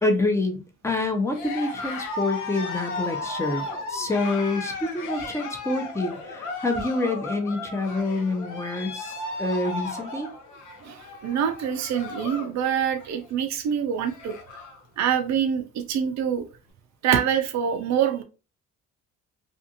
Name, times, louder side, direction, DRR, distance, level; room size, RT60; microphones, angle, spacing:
voice 1, 0.0-10.3, left 2 dB, 10° left, 0.7 m, -27 dB
Cheering, 1.3-12.6 12.9-13.3 13.7-13.8 14.0-14.8, left 3 dB, 80° left, 0.8 m, -35 dB
voice 2, 10.8-14.4 15.0-16.4 17.0-18.2, right 8 dB, 65° right, 0.5 m, -25 dB
2.6 x 2.5 x 2.7 m
cardioid pair, 90°, 30 cm